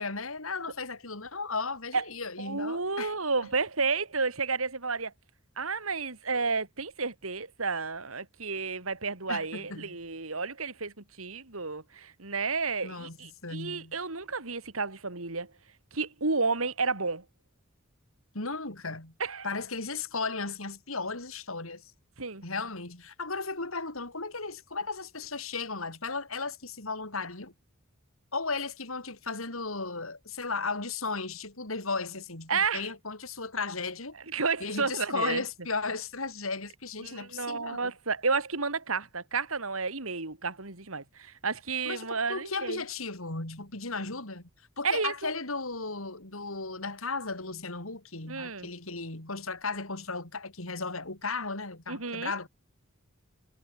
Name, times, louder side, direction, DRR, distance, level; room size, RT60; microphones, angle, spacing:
voice 1, 0.0-3.1 9.3-9.9 12.8-13.2 13.4-13.9 18.3-19.1 19.4-21.9 22.4-27.5 28.3-34.1 34.6-37.9 41.8-44.5 44.8-52.5, left 4 dB, 75° left, 5.1 m, -35 dB
voice 2, 2.4-5.1 5.6-15.5 15.9-17.2 19.2-19.5 22.2-22.4 32.5-32.9 34.3-35.4 37.0-42.8 44.8-45.3 48.3-48.7 51.9-52.3, right 4 dB, 80° right, 3.1 m, -31 dB
head